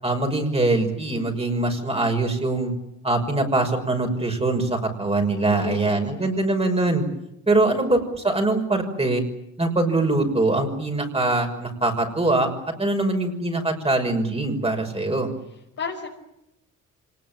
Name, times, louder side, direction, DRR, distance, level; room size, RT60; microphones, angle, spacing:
voice 1, 0.0-2.7 3.0-7.0 7.5-9.2 9.6-12.5 12.8-15.3, right 2 dB, 20° right, 4 dB, 6.0 m, -23 dB
voice 2, 5.4-6.7 7.7-8.0 14.6-14.9 15.5-16.1, left 6 dB, 50° left, -2 dB, 5.5 m, -35 dB
26.0 x 20.0 x 9.1 m, 0.85 s
cardioid pair, 90°, 30 cm